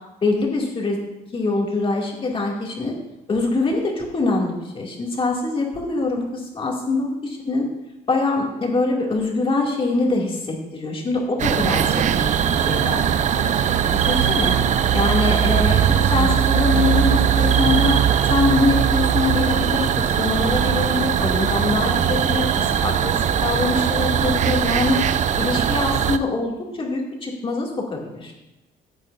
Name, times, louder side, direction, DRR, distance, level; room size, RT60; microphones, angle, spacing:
voice 1, 0.2-1.0 1.3-3.0 3.3-7.7 8.1-13.0 13.4-13.5 13.8-14.5 14.9-18.0 18.3-19.9 20.2-25.0 25.4-28.3, left 3 dB, 30° left, -2 dB, 2.6 m, -24 dB
sound 1, 11.4-26.2, right 9 dB, 45° right, 0.5 m, -20 dB
15.5 x 9.0 x 2.7 m, 0.97 s
cardioid pair, 110°, 17 cm